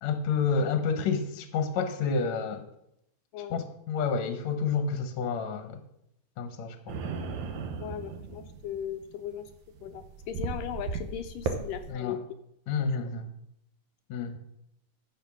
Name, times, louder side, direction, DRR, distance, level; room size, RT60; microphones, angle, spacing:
voice 1, 0.0-2.6 3.5-5.8 6.4-7.0 11.9-12.2 12.7-13.3 14.1-14.4, left 5 dB, 65° left, 7 dB, 1.9 m, -29 dB
sound 1, 6.9-11.9, right 4 dB, 65° right, 1.9 m, -36 dB
voice 2, 7.7-9.5 9.8-12.2 12.9-13.1, left 9 dB, 80° left, 8 dB, 2.0 m, -38 dB
12.5 x 7.5 x 6.2 m, 0.78 s
omnidirectional pair, 4.4 m